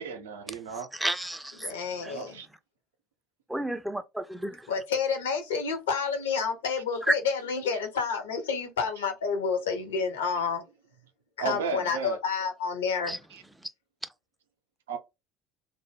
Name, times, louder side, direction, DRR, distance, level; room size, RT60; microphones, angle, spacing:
voice 1, 0.0-0.9 2.0-2.5 11.4-12.2 14.9-15.0, right 6 dB, 75° right, 0.4 m, -34 dB
voice 2, 0.9-1.7 2.0-2.1 3.5-4.7 13.1-13.2, right 1 dB, 5° right, 0.3 m, -33 dB
voice 3, 1.6-2.4 4.7-10.7 11.4-13.2, left 5 dB, 75° left, 0.6 m, -29 dB
2.1 x 2.0 x 3.2 m
figure-of-eight pair, 65°, 0 cm